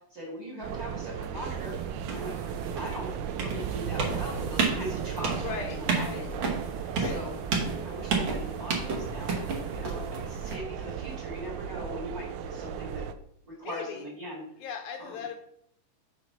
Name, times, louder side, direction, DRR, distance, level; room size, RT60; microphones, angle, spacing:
voice 1, 0.1-1.7 2.1-2.4 2.7-3.1 3.4-7.3 7.8-9.4 9.7-13.0 13.5-14.4 15.0-15.2, equal, 30° right, -4 dB, 2.1 m, -40 dB
sound 1, 0.6-10.5, right 4 dB, 60° right, 1.3 m, -33 dB
sound 2, 0.6-13.1, right 8 dB, 80° right, 1.7 m, -36 dB
voice 2, 5.4-6.3 6.9-7.2 13.6-14.1 14.6-15.3, left 7 dB, 75° left, 4 dB, 1.9 m, -38 dB
5.7 x 4.7 x 5.7 m, 0.70 s
omnidirectional pair, 3.7 m